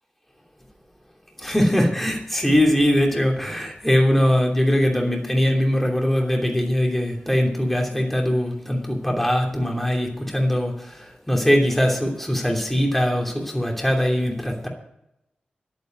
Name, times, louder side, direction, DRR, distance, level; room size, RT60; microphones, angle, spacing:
voice 1, 1.4-14.7, equal, 5° left, 1 dB, 2.8 m, -21 dB
11.0 x 9.2 x 7.8 m, 0.84 s
wide cardioid pair, 95°, 3 cm